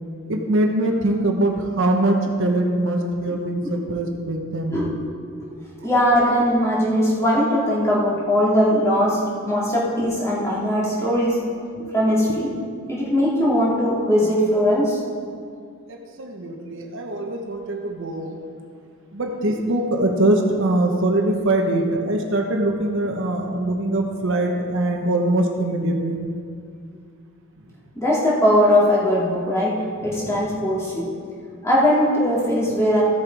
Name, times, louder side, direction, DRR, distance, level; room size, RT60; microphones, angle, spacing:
voice 1, 0.3-4.7 5.8-5.9 11.7-11.9 15.9-18.4 19.1-26.2 30.2-30.4, right 1 dB, 60° right, 2 dB, 1.0 m, -22 dB
voice 2, 3.2-3.7 4.7-4.9 5.4-5.5 5.8-9.2 9.4-11.4 11.9-12.5 12.9-15.0 28.0-31.1 31.6-33.0, equal, 15° left, -6 dB, 2.6 m, -20 dB
14.5 x 6.9 x 4.8 m, 2.1 s
head